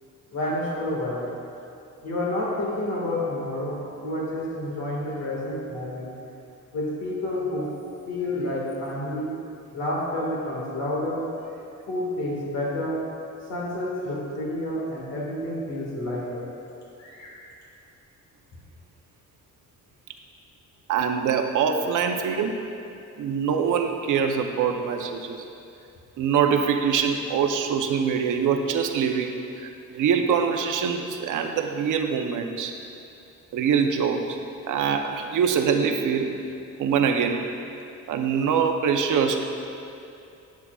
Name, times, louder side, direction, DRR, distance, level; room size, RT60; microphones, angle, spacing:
voice 1, 0.3-1.3 2.0-6.2 6.7-7.7 8.1-9.3 9.7-11.2 11.9-13.0 13.5-16.5 17.0-17.4, left 1 dB, 55° left, -5 dB, 1.8 m, -29 dB
voice 2, 20.9-22.6 23.2-25.4 26.2-32.8 33.5-34.4 34.7-36.3 36.8-37.5 38.1-39.5, right 6 dB, 75° right, 5 dB, 0.7 m, -24 dB
11.0 x 8.6 x 2.3 m, 2.7 s
cardioid pair, 135°, 31 cm